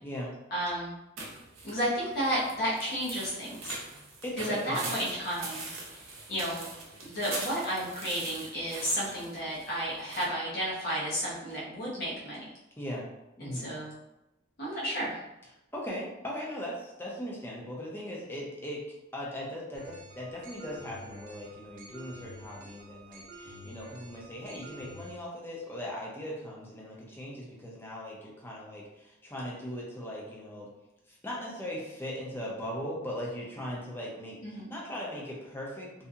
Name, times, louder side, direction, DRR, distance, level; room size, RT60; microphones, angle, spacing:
voice 1, 0.0-0.3 4.2-4.9 12.8-13.1 13.4-13.7 15.7-18.8 19.1-30.7 31.1-36.1, equal, 10° left, -4 dB, 0.5 m, -39 dB
voice 2, 0.5-0.9 1.6-3.7 4.4-5.7 6.3-6.6 7.0-12.4 13.4-13.9 14.6-15.2 34.4-34.7, equal, 50° left, -7 dB, 0.8 m, -32 dB
sound 1, 1.2-10.2, right 3 dB, 80° right, 0.7 m, -42 dB
sound 2, 19.7-25.1, equal, 45° right, 0.5 m, -49 dB
2.7 x 2.6 x 2.4 m, 0.94 s
head